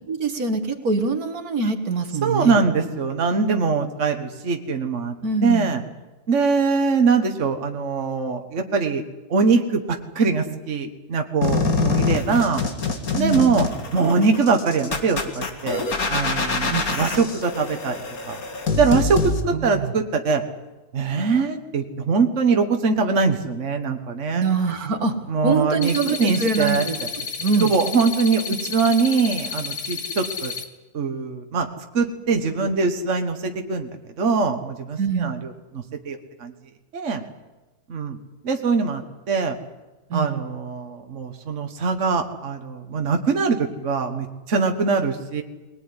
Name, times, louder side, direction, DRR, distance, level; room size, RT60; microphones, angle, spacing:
voice 1, 0.1-2.6 5.2-5.7 13.1-13.6 16.7-17.0 19.5-19.9 24.4-25.1 25.4-27.0 27.4-27.7 35.0-35.4 40.1-40.4, right 4 dB, 75° right, 6 dB, 2.3 m, -24 dB
voice 2, 2.2-5.2 5.4-5.8 6.3-9.0 9.3-12.6 13.2-15.8 16.1-18.0 18.3-18.4 18.8-20.4 20.9-24.4 25.3-27.1 27.7-30.5 30.9-31.7 31.9-36.5 36.9-37.2 37.9-38.2 38.4-39.6 40.1-45.4, right 4 dB, 55° right, 5 dB, 1.8 m, -22 dB
sound 1, 11.4-19.4, left 4 dB, 70° left, 2.6 m, -25 dB
sound 2, 25.8-30.6, left 6 dB, 85° left, 2.2 m, -31 dB
21.5 x 19.5 x 9.7 m, 1.1 s
omnidirectional pair, 1.6 m